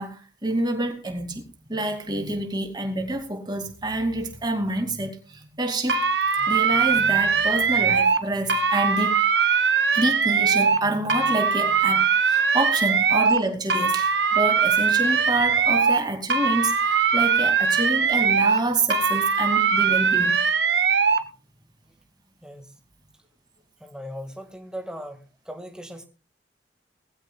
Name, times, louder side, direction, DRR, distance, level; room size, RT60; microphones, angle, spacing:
voice 1, 0.0-1.4 1.7-6.0 6.4-9.2 9.9-20.4, right 1 dB, 25° right, 2.6 m, -27 dB
sound 1, 5.9-8.2 8.5-10.8 11.1-13.4 13.7-16.0 16.3-18.6 18.9-21.2, right 6 dB, 85° right, 1.5 m, -21 dB
voice 2, 23.8-25.2 25.5-26.1, equal, 5° right, 1.9 m, -38 dB
20.5 x 15.0 x 2.4 m
head